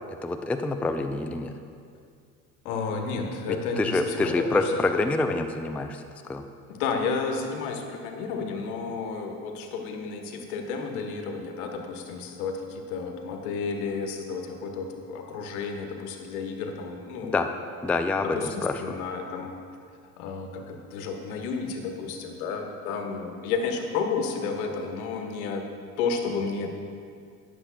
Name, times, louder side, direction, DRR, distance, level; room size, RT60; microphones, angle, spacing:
voice 1, 0.2-1.5 3.8-6.0 6.3-6.5 17.2-17.5 17.8-19.0, left 2 dB, 5° left, 6 dB, 0.3 m, -26 dB
voice 2, 2.6-4.8 6.7-17.4 18.3-19.5 20.2-25.6 26.0-26.7, left 5 dB, 75° left, 3 dB, 1.3 m, -32 dB
19.5 x 7.3 x 2.2 m, 2.3 s
hypercardioid pair, 70°, 44 cm